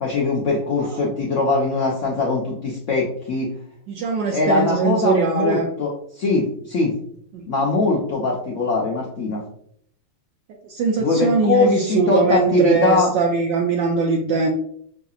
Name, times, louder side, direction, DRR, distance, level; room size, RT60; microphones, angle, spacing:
voice 1, 0.0-3.5 4.3-6.9 7.5-9.4 11.0-13.1, left 3 dB, 85° left, -3 dB, 0.6 m, -21 dB
voice 2, 3.9-5.7 7.3-7.4 10.6-14.5, right 5 dB, 75° right, 0 dB, 1.2 m, -21 dB
5.6 x 2.7 x 2.4 m, 0.66 s
omnidirectional pair, 2.1 m